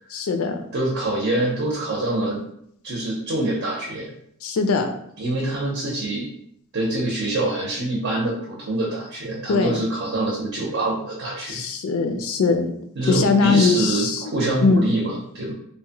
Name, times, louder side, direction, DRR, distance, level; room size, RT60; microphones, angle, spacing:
voice 1, 0.1-0.6 4.4-4.9 9.5-9.9 11.5-12.7 13.1-14.9, left 4 dB, 70° left, 6 dB, 0.4 m, -21 dB
voice 2, 0.7-2.4 2.8-4.1 5.2-6.3 6.7-11.6 13.0-15.5, right 2 dB, 55° right, -3 dB, 0.6 m, -25 dB
2.8 x 2.1 x 2.7 m, 0.69 s
head